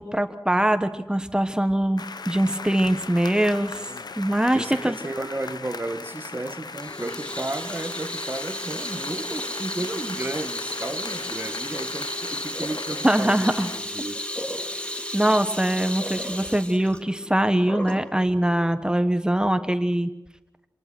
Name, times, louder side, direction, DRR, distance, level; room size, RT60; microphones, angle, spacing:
voice 1, 0.0-3.9 4.2-5.0 13.0-13.7 15.1-20.1, right 1 dB, 10° right, 1.2 m, -22 dB
sound 1, 2.0-13.8, left 4 dB, 75° left, 0.8 m, -38 dB
voice 2, 4.5-13.5 13.7-14.3, right 2 dB, 30° right, 1.2 m, -33 dB
Water tap faucet / Sink (filling or washing), 6.7-18.1, left 1 dB, 15° left, 2.1 m, -34 dB
sound 2, 6.9-18.7, left 1 dB, 50° left, 4.0 m, -43 dB
27.5 x 19.5 x 6.1 m
wide cardioid pair, 70°, 7 cm